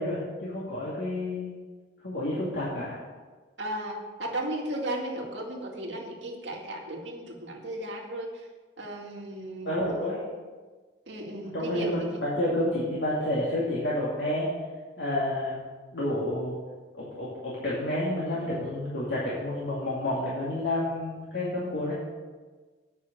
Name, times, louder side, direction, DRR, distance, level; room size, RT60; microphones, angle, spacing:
voice 1, 0.0-1.5 2.0-2.9 9.6-10.2 11.5-14.5 15.0-15.5 15.9-16.6 17.0-21.9, left 1 dB, 70° left, -8 dB, 2.5 m, -29 dB
voice 2, 3.6-8.4 8.8-10.1 11.1-12.2, right 1 dB, 80° right, -1 dB, 2.2 m, -35 dB
9.5 x 6.3 x 7.5 m, 1.4 s
head